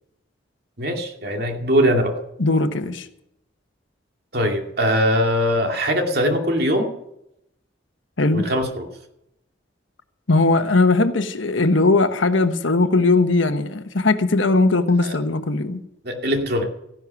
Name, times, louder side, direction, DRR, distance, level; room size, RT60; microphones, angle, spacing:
voice 1, 0.8-2.2 4.3-6.9 8.3-8.9 15.0-15.2 16.0-16.6, equal, 55° right, 2.4 m, -21 dB
voice 2, 2.4-3.1 8.2-8.5 10.3-15.8, left 3 dB, 80° left, 1.2 m, -19 dB
15.0 x 11.0 x 6.0 m
head